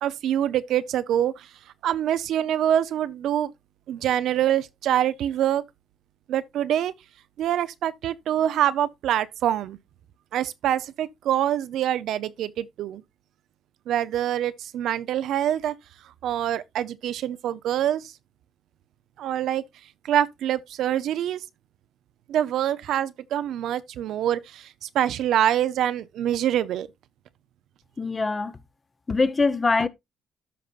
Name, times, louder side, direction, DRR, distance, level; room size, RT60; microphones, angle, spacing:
voice 1, 0.0-1.5 1.8-3.5 3.9-5.6 6.3-6.9 7.4-9.8 10.3-13.0 13.9-15.7 16.2-18.1 19.2-19.6 20.0-21.4 22.3-26.9, right 11 dB, 80° right, 0.6 m, -25 dB
voice 2, 28.0-28.6 29.1-29.9, left 3 dB, 30° left, 0.8 m, -23 dB
13.0 x 5.3 x 2.4 m
cardioid pair, 90°, 0 cm